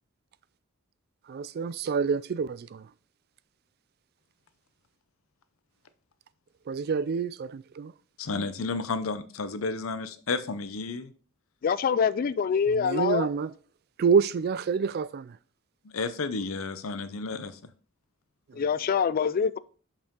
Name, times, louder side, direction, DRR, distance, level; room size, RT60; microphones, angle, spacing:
voice 1, 1.3-2.9 6.7-7.9 12.7-13.5 14.0-15.3, right 6 dB, 50° right, 0.3 m, -27 dB
voice 2, 8.2-11.1 15.8-17.6, left 4 dB, 90° left, 0.7 m, -32 dB
voice 3, 11.6-13.3 18.6-19.6, left 6 dB, 45° left, 0.3 m, -25 dB
6.8 x 5.6 x 3.7 m
head